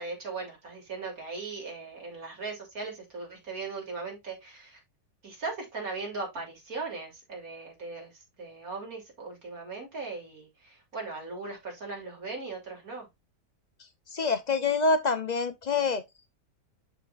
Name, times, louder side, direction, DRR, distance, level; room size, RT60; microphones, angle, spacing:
voice 1, 0.0-4.8 5.2-8.1 8.4-10.5 10.9-13.1, right 3 dB, 70° right, 3.6 m, -38 dB
voice 2, 14.1-16.0, left 3 dB, 40° left, 0.6 m, -26 dB
11.5 x 4.2 x 2.5 m
omnidirectional pair, 1.6 m